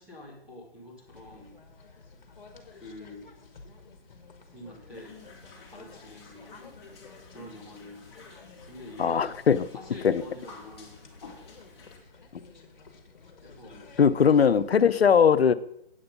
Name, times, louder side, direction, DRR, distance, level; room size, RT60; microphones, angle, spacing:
voice 1, 0.0-2.0 2.7-3.3 4.4-5.2 5.6-6.5 7.3-8.2 8.6-9.3 9.7-11.0 13.4-14.6, left 1 dB, 5° right, -8 dB, 2.0 m, -47 dB
sound 1, 1.1-14.9, left 4 dB, 50° left, 2.0 m, -52 dB
sound 2, 4.9-12.0, left 4 dB, 25° left, 2.1 m, -53 dB
voice 2, 9.0-9.7 10.0-10.2 14.0-15.5, left 7 dB, 80° left, 13 dB, 0.7 m, -20 dB
8.7 x 8.0 x 5.3 m, 0.74 s
hypercardioid pair, 170°, 31 cm